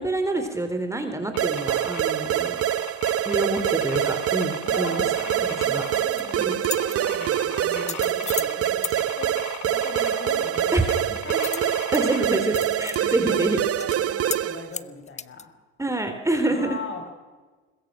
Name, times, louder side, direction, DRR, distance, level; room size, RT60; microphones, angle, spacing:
voice 1, 0.0-2.6 3.2-5.0 5.7-5.8 6.4-6.6 10.7-11.0 11.9-13.6 15.8-16.8, right 2 dB, 10° right, 6 dB, 3.2 m, -26 dB
sound 1, 1.3-12.2, left 8 dB, 70° left, 3.7 m, -38 dB
sound 2, 1.4-14.7, right 11 dB, 45° right, 1.0 m, -25 dB
voice 2, 4.6-15.5 16.5-17.1, left 3 dB, 40° left, 5 dB, 5.6 m, -39 dB
sound 3, 5.9-6.2 6.6-7.0 7.7-8.5 8.8-9.0 11.4-12.0 12.3-13.0 13.3-13.4 13.8-14.0 14.3-14.4 14.7-15.4, left 6 dB, 20° left, 0.7 m, -33 dB
21.5 x 21.0 x 6.3 m, 1.3 s
supercardioid pair, 90°, 31 cm